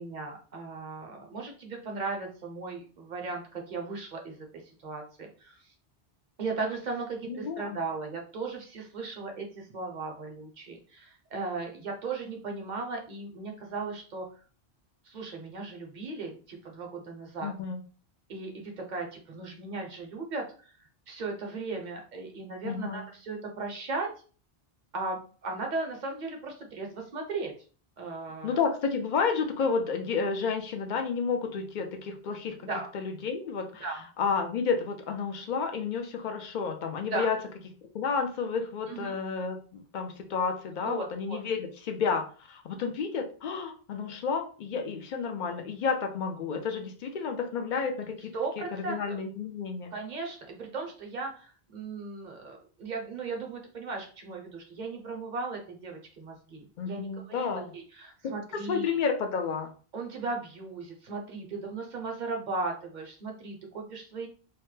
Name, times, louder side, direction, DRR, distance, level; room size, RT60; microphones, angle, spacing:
voice 1, 0.0-5.6 6.4-14.2 15.0-17.5 18.3-20.7 21.1-24.1 24.9-27.5 28.0-28.6 32.6-32.9 33.8-34.1 37.1-37.3 38.9-39.2 40.8-41.4 48.3-49.2 49.9-59.0 59.9-64.3, right 3 dB, 50° right, 2 dB, 0.7 m, -37 dB
voice 2, 7.3-7.8 17.4-17.8 22.6-23.0 28.4-32.6 32.9-33.8 34.2-37.4 37.9-49.9 56.8-57.7 58.2-58.3 58.7-59.7, left 5 dB, 60° left, 5 dB, 0.6 m, -31 dB
2.8 x 2.1 x 3.1 m, 0.39 s
omnidirectional pair, 1.0 m